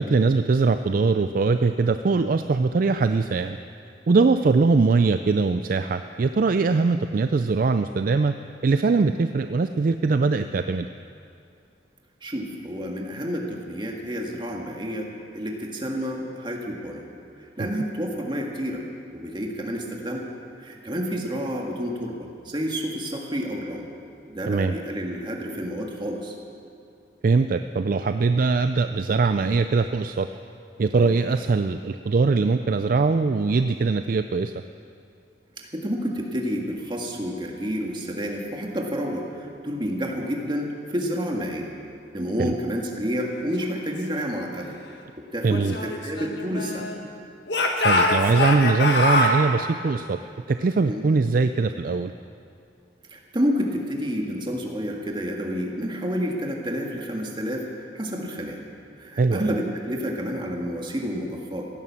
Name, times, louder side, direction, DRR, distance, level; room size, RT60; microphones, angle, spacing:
voice 1, 0.0-3.6 4.1-8.3 8.6-10.9 17.6-17.7 24.5-24.8 27.2-30.3 30.8-34.5 42.4-42.5 45.4-45.7 47.8-50.2 50.5-52.1 59.2-59.6, right 4 dB, 50° right, 9 dB, 0.4 m, -21 dB
voice 2, 12.2-17.0 17.6-18.8 19.1-20.2 20.6-23.9 24.3-26.4 30.9-31.1 35.6-41.7 42.1-44.7 45.2-46.9 50.9-51.1 53.1-58.6 59.0-61.7, equal, 25° right, 0 dB, 1.8 m, -29 dB
Speech / Shout, 45.5-47.0 47.5-49.4, left 2 dB, 65° left, 1.7 m, -23 dB
16.5 x 11.0 x 7.2 m, 2.5 s
head